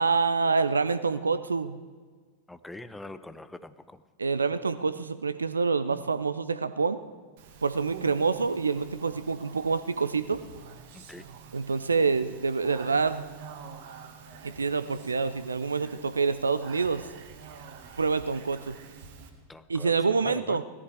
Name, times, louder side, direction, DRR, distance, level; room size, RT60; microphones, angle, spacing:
voice 1, 0.0-1.8 4.2-7.0 7.6-10.4 11.5-13.3 14.4-17.1 18.0-18.7 19.7-20.6, right 4 dB, 75° right, 13 dB, 0.5 m, -27 dB
voice 2, 2.5-4.0 10.9-11.3 19.5-20.6, left 2 dB, 5° left, 13 dB, 0.7 m, -43 dB
Speech, 7.4-19.3, right 6 dB, 50° right, 1.7 m, -47 dB
17.5 x 13.5 x 4.8 m, 1.5 s
figure-of-eight pair, 90°, 0 cm